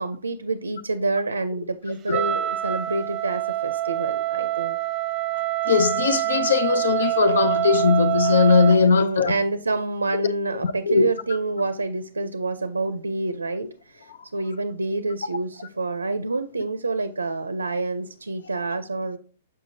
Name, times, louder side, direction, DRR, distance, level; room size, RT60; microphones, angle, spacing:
voice 1, 0.0-4.8 8.9-19.2, right 3 dB, 90° right, 0.5 m, -28 dB
Wind instrument woodwind instrument, 2.1-8.9, right 14 dB, 25° right, 0.7 m, -25 dB
voice 2, 5.7-9.3 10.6-11.0, left 5 dB, 70° left, 0.5 m, -19 dB
6.4 x 5.5 x 2.7 m
hypercardioid pair, 115°, 0 cm